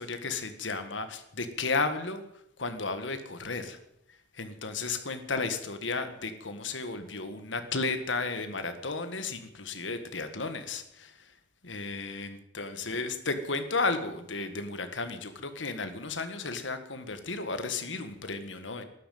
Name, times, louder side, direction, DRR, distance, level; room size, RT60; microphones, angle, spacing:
voice 1, 0.0-2.2 2.6-3.8 4.4-11.1 11.6-18.8, left 3 dB, 90° left, 8 dB, 1.8 m, -33 dB
13.5 x 11.5 x 9.4 m, 0.78 s
head